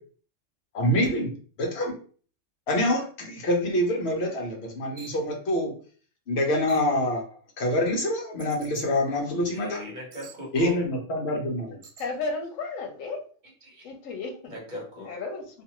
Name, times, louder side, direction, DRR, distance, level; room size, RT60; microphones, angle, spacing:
voice 1, 0.7-1.3 1.6-2.0 2.7-5.7 6.3-9.8 10.5-11.8, left 1 dB, 60° left, 1.0 m, -26 dB
sound 1, 5.0-5.2 6.7-7.0 8.4-8.8 10.1-10.4 11.8-12.1, right 4 dB, 90° right, 1.1 m, -47 dB
voice 2, 9.4-10.8 13.6-13.9 14.5-15.1, left 1 dB, 40° right, 1.0 m, -39 dB
voice 3, 12.0-13.2 13.8-14.6 15.1-15.6, left 3 dB, 85° left, 1.0 m, -33 dB
2.5 x 2.5 x 2.9 m
omnidirectional pair, 1.3 m